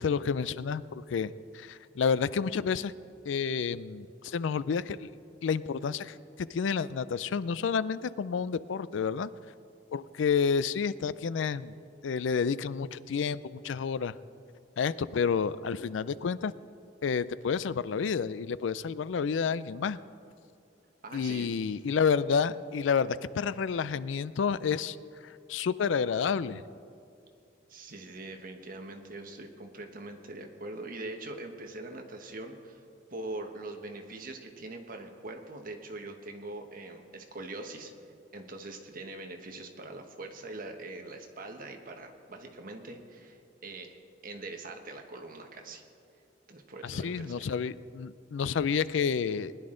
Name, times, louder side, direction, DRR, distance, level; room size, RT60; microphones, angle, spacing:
voice 1, 0.0-2.9 3.2-5.1 5.4-9.3 9.9-11.8 12.0-14.1 14.8-16.5 17.0-20.0 21.1-25.0 25.2-26.6 46.8-49.5, left 6 dB, 90° left, 17 dB, 0.4 m, -30 dB
voice 2, 21.0-21.5 27.7-32.8 33.1-37.9 38.3-44.0 44.2-45.8 46.5-47.5, right 2 dB, 50° right, 4 dB, 1.3 m, -42 dB
20.0 x 11.0 x 3.8 m, 2.5 s
head